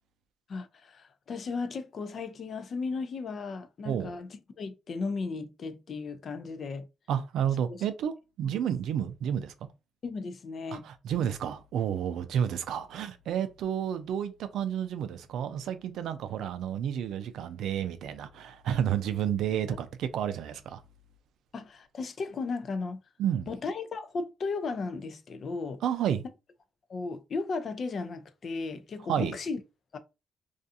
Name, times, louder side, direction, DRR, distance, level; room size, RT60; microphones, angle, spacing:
voice 1, 0.5-6.9 7.7-7.8 10.0-10.9 21.5-23.0 23.5-25.8 26.9-29.6 29.9-30.0, left 4 dB, 50° left, 0.4 m, -35 dB
voice 2, 7.1-9.5 10.7-20.8 23.2-23.5 25.8-26.2 29.1-29.4, right 9 dB, 80° right, 0.4 m, -31 dB
2.4 x 2.3 x 2.6 m
cardioid pair, 90°, 0 cm